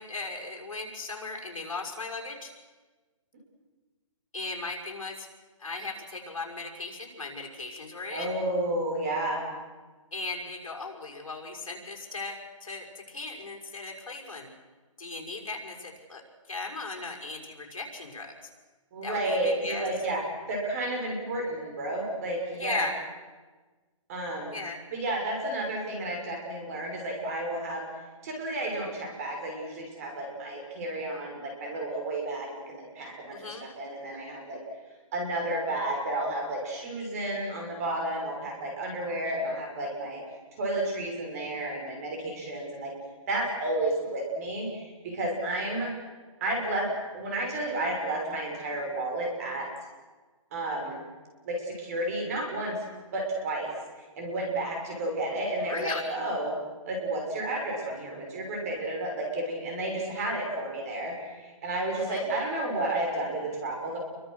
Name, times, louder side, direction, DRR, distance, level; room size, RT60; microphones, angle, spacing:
voice 1, 0.0-2.5 4.3-5.3 5.6-8.3 10.1-14.5 15.0-16.2 16.5-18.5 19.0-19.8 22.6-22.9 24.5-24.8 33.3-33.7 55.6-56.2 62.0-62.3, left 3 dB, 70° left, 1 dB, 6.1 m, -37 dB
voice 2, 8.1-9.4 18.9-22.9 24.1-24.6 24.9-27.9 28.2-34.6 35.1-40.2 40.6-42.9 43.3-45.9 46.4-49.7 50.5-51.0 51.4-52.8 53.1-56.5 56.8-64.0, right 1 dB, 25° right, 0 dB, 6.3 m, -31 dB
29.0 x 23.5 x 6.6 m, 1.3 s
hypercardioid pair, 175°, 17 cm